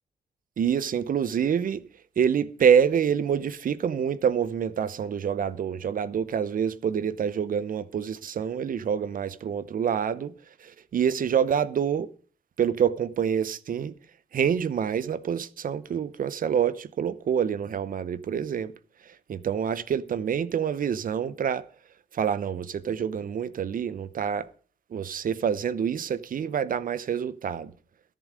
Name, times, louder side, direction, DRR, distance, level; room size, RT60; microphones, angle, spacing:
voice 1, 0.6-1.8 2.2-10.3 10.6-12.1 12.6-13.9 14.3-18.7 19.3-21.6 22.1-24.5 24.9-27.7, right 8 dB, 60° right, 0.9 m, -26 dB
22.0 x 7.5 x 5.1 m
supercardioid pair, 60°, 16 cm